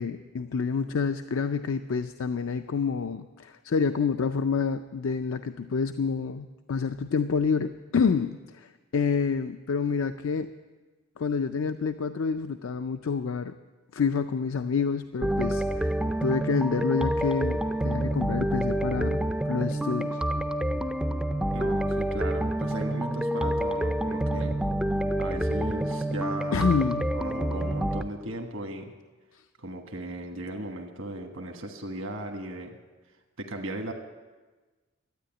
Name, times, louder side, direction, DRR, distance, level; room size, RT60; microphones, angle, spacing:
voice 1, 0.0-10.5 11.2-13.5 13.9-20.2 25.1-25.2 26.5-27.1, left 5 dB, 70° left, 9 dB, 0.4 m, -28 dB
sound 1, 15.2-28.0, right 1 dB, 5° right, 0.4 m, -28 dB
voice 2, 21.5-24.6 25.2-26.9 27.1-28.9 29.6-32.8 33.4-33.9, right 1 dB, 70° right, 3 dB, 1.3 m, -37 dB
13.0 x 9.2 x 8.9 m, 1.3 s
head